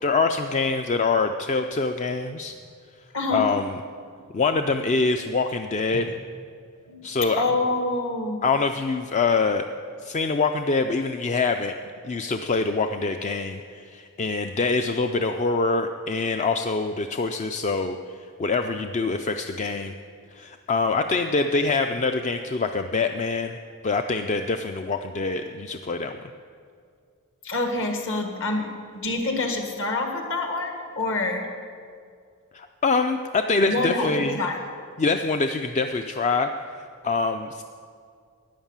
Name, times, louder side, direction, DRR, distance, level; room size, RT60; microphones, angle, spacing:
voice 1, 0.0-2.5 3.3-3.8 4.3-6.2 7.0-7.4 8.4-9.7 10.0-11.7 12.0-18.0 18.4-19.9 20.3-23.6 23.8-26.2 32.5-34.4 35.0-36.5 37.0-37.6, left 4 dB, 30° left, 7 dB, 0.4 m, -25 dB
voice 2, 3.1-3.5 5.9-6.0 6.9-7.0 7.4-8.4 27.4-28.7 28.9-31.5 33.6-34.6, left 2 dB, 60° left, 3 dB, 1.8 m, -26 dB
12.5 x 9.7 x 7.4 m, 2.2 s
head